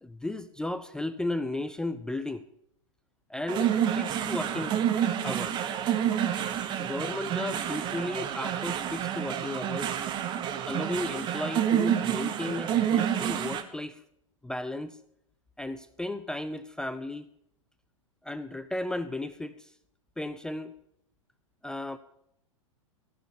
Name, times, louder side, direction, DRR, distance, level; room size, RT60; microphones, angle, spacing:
voice 1, 0.0-2.5 3.3-4.8 5.2-5.7 6.8-9.9 10.7-14.0 14.4-15.0 15.6-17.3 18.2-19.7 20.2-20.7 21.6-22.0, left 2 dB, 5° left, 12 dB, 0.4 m, -34 dB
sound 1, 3.5-13.6, right 10 dB, 25° right, 1.0 m, -28 dB
14.5 x 6.3 x 8.2 m, 0.75 s
figure-of-eight pair, 100°, 17 cm